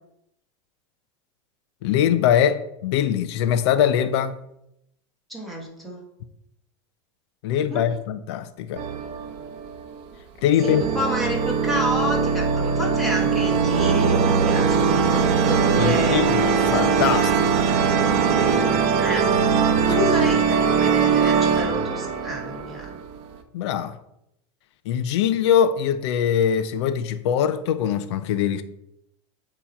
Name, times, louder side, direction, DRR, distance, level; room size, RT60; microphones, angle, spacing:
voice 1, 1.8-4.4 7.4-8.8 10.4-10.8 15.8-17.6 23.5-24.0 24.9-28.6, left 9 dB, 65° left, 0.6 m, -22 dB
voice 2, 5.3-6.0 7.7-7.9 10.6-16.3 19.0-19.3 19.9-23.0, left 1 dB, ahead, 1.6 m, -29 dB
sound 1, 8.8-10.0 10.6-23.2, right 6 dB, 40° right, 0.8 m, -21 dB
8.5 x 3.0 x 5.6 m
supercardioid pair, 160°, 15 cm